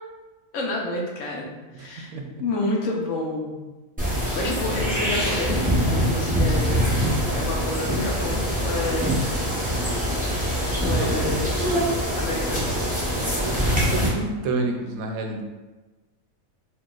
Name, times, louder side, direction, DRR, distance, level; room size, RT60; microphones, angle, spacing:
voice 1, 0.5-2.1 2.4-3.6 4.3-6.8 7.3-9.2 10.8-11.5 12.2-12.8, left 2 dB, 70° left, -1 dB, 0.9 m, -29 dB
voice 2, 1.7-2.3 10.9-11.2 13.1-15.4, right 3 dB, 85° right, 3 dB, 1.0 m, -29 dB
sound 1, 4.0-14.1, equal, 10° right, 0.6 m, -24 dB
3.8 x 2.8 x 2.4 m, 1.2 s
omnidirectional pair, 1.4 m